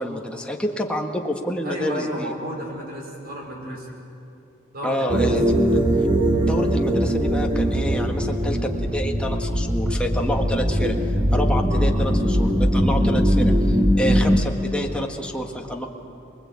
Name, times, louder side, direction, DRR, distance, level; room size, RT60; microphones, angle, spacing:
voice 1, 0.0-2.3 3.6-3.8 4.8-5.4 6.4-11.0 11.3-15.9, equal, 5° left, 1 dB, 1.7 m, -28 dB
voice 2, 1.6-3.9 4.7-5.3 11.7-11.9, equal, 50° right, 0 dB, 5.2 m, -32 dB
sound 1, 5.1-14.4, equal, 25° right, 1.6 m, -20 dB
24.5 x 21.0 x 8.6 m, 2.8 s
head